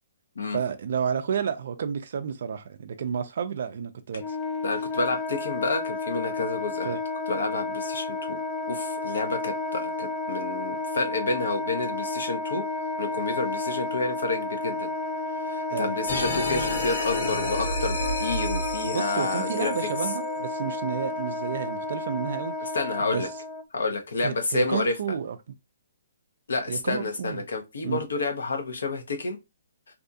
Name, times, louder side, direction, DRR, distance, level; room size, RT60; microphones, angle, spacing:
voice 1, 0.5-4.4 6.8-7.0 15.7-16.3 18.8-22.6 23.0-23.3 24.2-25.4 26.7-27.5 27.8-28.0, right 7 dB, 60° right, 0.3 m, -31 dB
Wind instrument woodwind instrument, 4.1-23.6, left 2 dB, 20° left, 0.3 m, -32 dB
voice 2, 4.6-7.0 7.3-8.4 8.7-12.6 13.0-14.9 15.5-19.7 22.7-23.3 23.7-24.9 26.5-29.4, left 3 dB, 80° left, 0.8 m, -29 dB
sound 1, 16.1-21.0, left 2 dB, 65° left, 1.3 m, -31 dB
2.6 x 2.3 x 2.6 m
hypercardioid pair, 155°, 0 cm